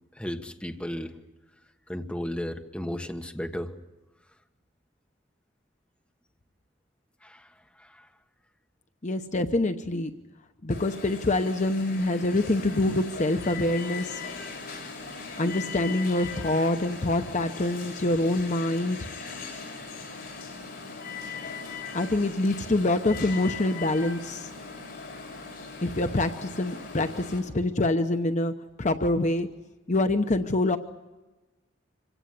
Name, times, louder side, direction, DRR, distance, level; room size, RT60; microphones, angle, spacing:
voice 1, 0.1-1.2 1.9-3.7 7.2-8.1, equal, 5° left, 4 dB, 1.4 m, -35 dB
voice 2, 9.0-10.1 10.6-14.2 15.4-19.1 21.9-24.5 25.8-29.5 29.9-30.8, left 2 dB, 40° left, 8 dB, 0.9 m, -25 dB
Alarm, 10.7-27.4, left 4 dB, 55° left, 7.5 m, -39 dB
26.0 x 17.0 x 9.8 m, 1.1 s
head